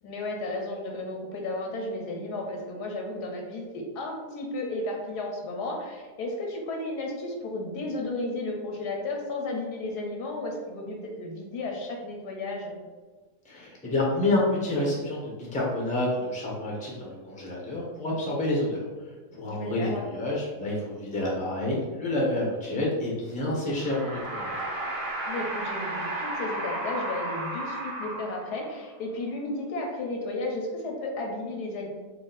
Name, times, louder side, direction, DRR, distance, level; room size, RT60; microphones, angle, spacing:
voice 1, 0.0-12.8 19.4-20.0 25.3-31.9, left 2 dB, 85° left, 1 dB, 1.4 m, -33 dB
voice 2, 13.4-24.6, left 1 dB, 5° left, -4 dB, 0.7 m, -29 dB
sound 1, 23.7-28.8, right 1 dB, 60° right, 1.4 m, -33 dB
4.4 x 2.4 x 4.0 m, 1.4 s
omnidirectional pair, 1.7 m